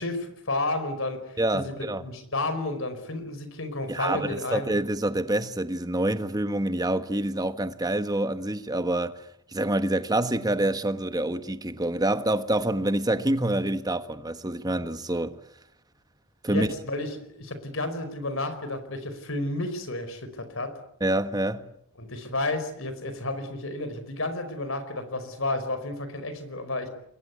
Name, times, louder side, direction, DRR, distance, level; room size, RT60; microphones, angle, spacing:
voice 1, 0.0-4.8 16.5-20.7 22.0-26.9, left 2 dB, 65° left, 4.9 m, -31 dB
voice 2, 1.4-2.0 3.9-9.2 9.5-15.4 16.4-16.7 21.0-21.6, right 1 dB, 20° right, 1.4 m, -27 dB
28.5 x 22.0 x 8.4 m
head